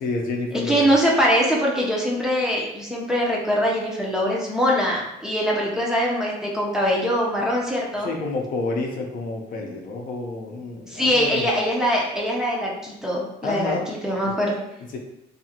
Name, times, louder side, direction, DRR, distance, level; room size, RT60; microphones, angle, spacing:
voice 1, 0.0-0.9 8.0-11.4 13.4-13.9 14.2-14.3 14.9-15.0, left 3 dB, 55° left, 1 dB, 0.6 m, -29 dB
voice 2, 0.7-8.1 10.9-14.6, equal, 5° right, -4 dB, 0.6 m, -22 dB
2.7 x 2.4 x 2.8 m, 0.83 s
cardioid pair, 110°, 17 cm